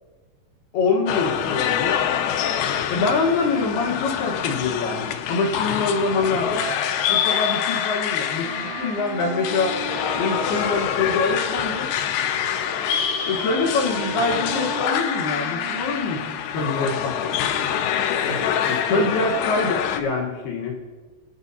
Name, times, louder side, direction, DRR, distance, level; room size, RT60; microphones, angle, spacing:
voice 1, 0.7-2.0 2.9-6.7 7.1-9.8 10.2-11.9 13.3-17.4 18.7-20.8, left 3 dB, 65° left, -2 dB, 2.9 m, -25 dB
sound 1, 1.1-20.0, left 9 dB, 85° left, 2.4 m, -25 dB
Wind instrument woodwind instrument, 8.4-16.5, right 6 dB, 85° right, 3.4 m, -36 dB
voice 2, 16.5-17.0 18.2-19.1, right 3 dB, 55° right, -3 dB, 3.9 m, -34 dB
25.0 x 9.8 x 2.7 m, 1.3 s
omnidirectional pair, 5.3 m